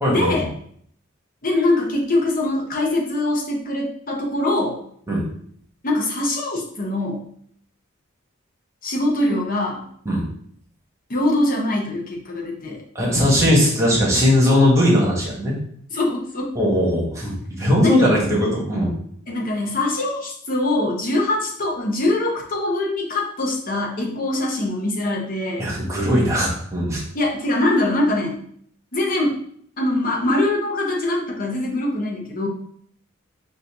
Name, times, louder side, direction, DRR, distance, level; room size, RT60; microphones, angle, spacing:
voice 1, 0.1-0.5 1.4-4.8 5.8-7.2 8.8-9.8 11.1-12.8 15.9-16.5 17.8-18.2 19.3-25.7 27.1-28.4 28.9-29.3 29.8-32.5, left 2 dB, 45° left, -1 dB, 0.8 m, -23 dB
voice 2, 12.9-15.5 16.5-18.9 25.6-27.0, left 1 dB, 15° right, -4 dB, 1.1 m, -19 dB
4.4 x 2.5 x 3.4 m, 0.64 s
head